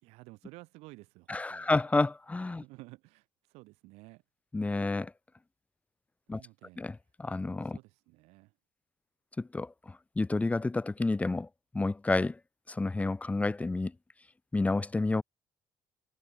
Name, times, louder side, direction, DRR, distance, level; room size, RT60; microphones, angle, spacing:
voice 1, 0.0-1.7 2.5-4.2 6.3-6.9 7.6-8.5, right 23 dB, 85° right, 2.9 m, -53 dB
voice 2, 1.3-2.6 4.5-5.1 6.3-6.4 6.8-7.8 9.4-9.7 10.2-11.5 11.7-12.4 12.7-13.9 14.5-15.2, left 3 dB, 15° left, 0.3 m, -30 dB
supercardioid pair, 70°, 11 cm